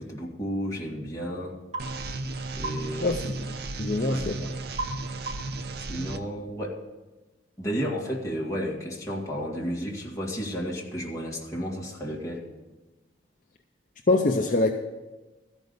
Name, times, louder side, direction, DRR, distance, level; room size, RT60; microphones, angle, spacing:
voice 1, 0.0-1.6 2.6-3.2 4.1-4.6 5.9-6.8 7.6-12.5, equal, 15° left, -3 dB, 1.8 m, -32 dB
sound 1, 1.7-1.9 2.6-2.8 4.8-5.0 5.3-5.6, right 2 dB, 35° right, 3.1 m, -33 dB
sound 2, 1.8-6.2, right 2 dB, 60° right, 0.6 m, -34 dB
voice 2, 3.0-3.3 3.8-4.3 14.1-14.7, left 2 dB, 45° left, 4 dB, 0.6 m, -23 dB
13.5 x 5.3 x 7.9 m, 1.2 s
head